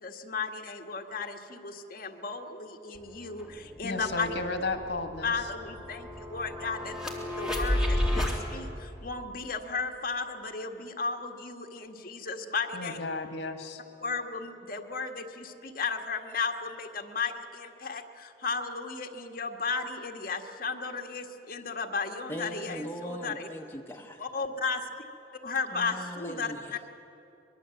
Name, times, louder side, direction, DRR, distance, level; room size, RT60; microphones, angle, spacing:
voice 1, 0.0-4.3 5.2-13.0 14.0-23.5 24.2-24.9 25.4-26.5, left 4 dB, 50° left, 3 dB, 1.7 m, -34 dB
sound 1, 2.9-3.0 3.4-8.4, left 1 dB, 5° right, 3.0 m, -32 dB
voice 2, 3.8-5.5 12.7-13.8, left 3 dB, 80° left, 6 dB, 1.6 m, -34 dB
voice 3, 22.3-24.2 25.7-26.9, equal, 15° left, 2 dB, 1.0 m, -40 dB
23.5 x 22.0 x 8.0 m, 2.9 s
head